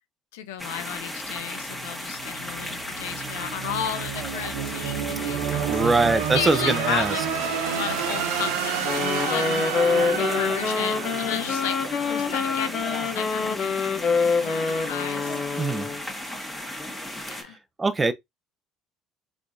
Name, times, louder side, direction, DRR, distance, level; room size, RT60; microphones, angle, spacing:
voice 1, 0.3-5.8 6.3-7.2 7.7-15.6 17.4-17.6, left 10 dB, 80° left, 0.6 m, -34 dB
sound 1, 0.6-17.4, left 1 dB, 5° left, 1.6 m, -35 dB
sound 2, 1.3-12.3, right 7 dB, 80° right, 0.6 m, -30 dB
voice 2, 5.7-7.1 15.6-15.9 17.4-18.1, right 3 dB, 25° right, 0.6 m, -23 dB
Wind instrument woodwind instrument, 8.8-16.0, left 5 dB, 45° left, 0.8 m, -26 dB
4.3 x 2.6 x 2.7 m
hypercardioid pair, 65°, 0 cm